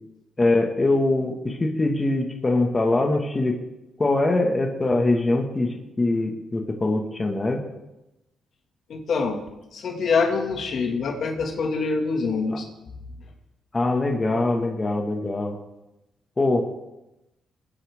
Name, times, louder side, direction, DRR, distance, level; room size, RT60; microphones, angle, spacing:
voice 1, 0.4-3.6 4.0-7.6 12.5-12.6 13.7-15.6 16.4-16.6, left 2 dB, 25° left, 2 dB, 1.9 m, -23 dB
voice 2, 8.9-9.4 9.7-12.7, left 4 dB, 65° left, 3 dB, 2.2 m, -25 dB
22.5 x 9.7 x 3.7 m, 0.94 s
cardioid pair, 85°, 0 cm